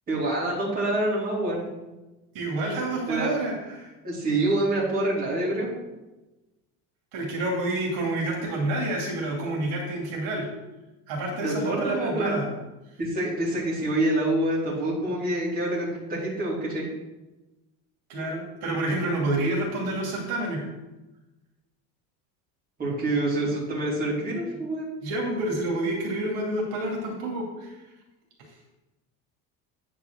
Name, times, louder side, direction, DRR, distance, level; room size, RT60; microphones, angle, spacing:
voice 1, 0.1-1.6 3.1-3.4 4.0-5.7 11.4-12.4 13.0-16.8 22.8-24.9, right 1 dB, 25° right, -5 dB, 3.1 m, -26 dB
voice 2, 2.3-3.9 7.1-10.5 11.1-12.5 18.1-20.6 25.0-27.7, right 2 dB, 75° right, -1 dB, 2.7 m, -28 dB
9.4 x 4.8 x 6.2 m, 1.1 s
cardioid pair, 165°, 36 cm